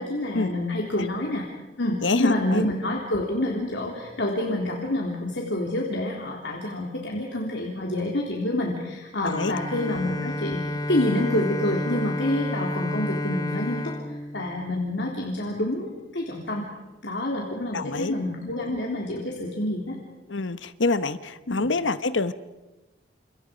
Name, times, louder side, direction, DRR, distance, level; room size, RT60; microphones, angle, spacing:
voice 1, 0.0-1.5 1.8-16.7 17.0-20.0 21.5-21.6, left 1 dB, 70° left, -1 dB, 3.5 m, -28 dB
voice 2, 2.0-2.6 9.2-9.8 17.7-18.1 20.3-22.3, left 3 dB, 90° left, 13 dB, 1.1 m, -26 dB
Bowed string instrument, 9.2-15.3, left 1 dB, 20° left, 0.9 m, -31 dB
29.5 x 28.5 x 5.2 m, 1.1 s
head